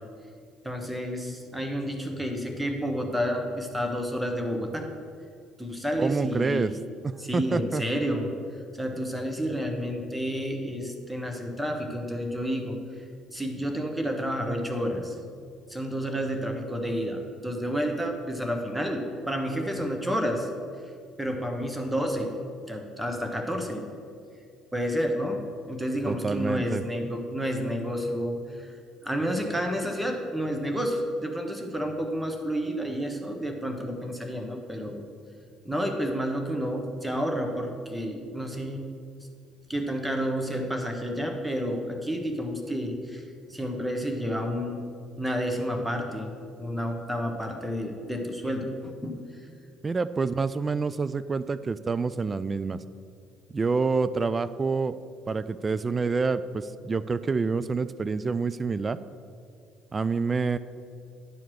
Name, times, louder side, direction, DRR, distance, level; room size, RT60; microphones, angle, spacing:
voice 1, 0.6-4.9 5.6-6.7 7.2-8.3 8.8-12.8 13.3-15.2 15.7-20.5 21.2-22.3 22.7-23.8 24.7-28.8 29.0-35.0 35.6-38.8 39.7-43.2 43.5-44.8 45.2-49.2, equal, 5° right, 3 dB, 1.4 m, -30 dB
voice 2, 6.0-6.7 7.0-7.8 26.1-26.8 49.8-52.8 53.5-55.0 55.3-59.0 59.9-60.6, right 4 dB, 30° right, 14 dB, 0.4 m, -27 dB
10.5 x 4.6 x 6.1 m, 2.3 s
figure-of-eight pair, 50°, 0 cm